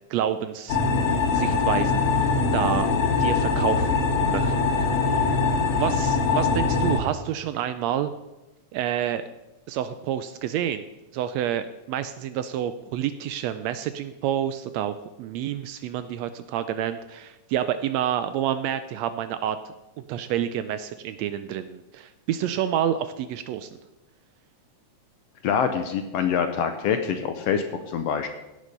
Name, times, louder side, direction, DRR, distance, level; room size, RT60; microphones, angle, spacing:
voice 1, 0.1-1.0 1.3-2.9 3.2-4.8 5.2-5.4 5.7-8.1 8.7-9.2 9.7-10.8 11.1-23.8, right 10 dB, 80° right, 11 dB, 1.5 m, -29 dB
sound 1, 0.7-7.0, left 4 dB, 60° left, 2.1 m, -22 dB
voice 2, 25.4-28.3, left 7 dB, 75° left, 7 dB, 1.5 m, -25 dB
17.0 x 6.6 x 5.2 m, 1.0 s
omnidirectional pair, 3.5 m